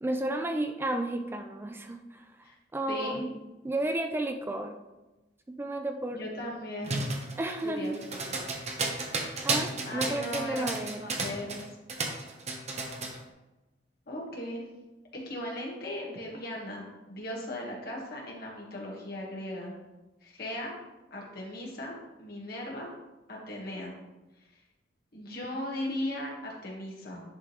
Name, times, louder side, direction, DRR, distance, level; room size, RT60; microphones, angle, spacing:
voice 1, 0.0-3.3 3.6-4.8 5.5-6.2 7.4-8.0 9.4-11.1, right 1 dB, 15° right, 6 dB, 0.3 m, -32 dB
voice 2, 2.9-3.3 6.1-7.0 7.6-8.5 9.8-11.6 14.1-14.6 15.1-19.7 20.2-20.7 21.1-22.9 23.3-23.9 25.1-27.2, left 1 dB, 60° left, -2 dB, 1.7 m, -38 dB
sound 1, 6.8-11.6 11.9-13.2, right 3 dB, 40° right, 0.9 m, -32 dB
10.5 x 3.6 x 3.2 m, 1.1 s
head